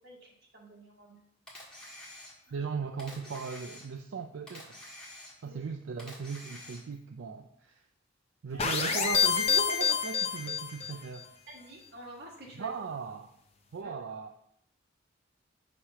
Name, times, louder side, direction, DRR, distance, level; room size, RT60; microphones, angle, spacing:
voice 1, 0.0-1.2 2.5-2.6 5.4-5.6 8.5-8.6 11.5-12.7 13.8-13.9, right 1 dB, 55° right, -2 dB, 1.6 m, -50 dB
Camera, 1.5-2.6 3.0-4.1 4.5-5.6 6.0-7.0, left 1 dB, 5° left, 1.7 m, -48 dB
voice 2, 2.5-4.8 5.4-7.8 8.4-11.3 12.6-13.3 13.7-14.3, right 5 dB, 75° right, 5 dB, 0.4 m, -38 dB
sound 1, 8.6-11.0, left 7 dB, 30° left, 0.5 m, -27 dB
6.4 x 3.0 x 5.5 m, 0.71 s
head